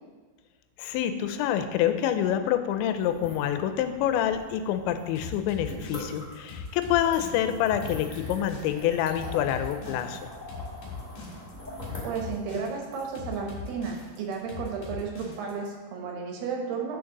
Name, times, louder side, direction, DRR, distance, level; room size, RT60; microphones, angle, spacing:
voice 1, 0.8-10.2, left 10 dB, 90° left, 9 dB, 2.9 m, -27 dB
sound 1, 3.0-14.9, left 1 dB, 15° left, 1.7 m, -43 dB
sound 2, 5.2-15.7, left 5 dB, 55° left, 2.7 m, -40 dB
voice 2, 12.0-17.0, right 5 dB, 70° right, 0 dB, 3.0 m, -33 dB
6.5 x 6.4 x 5.9 m, 1.4 s
omnidirectional pair, 5.1 m